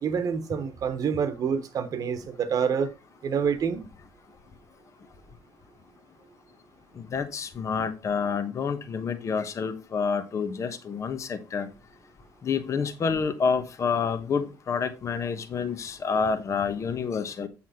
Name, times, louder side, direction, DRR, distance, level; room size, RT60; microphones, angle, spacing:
voice 1, 0.0-2.9 3.2-3.9, right 6 dB, 50° right, 1.2 m, -27 dB
voice 2, 7.0-11.7 12.4-17.5, left 5 dB, 40° left, 1.2 m, -28 dB
7.8 x 5.7 x 4.3 m
cardioid pair, 105°, 8 cm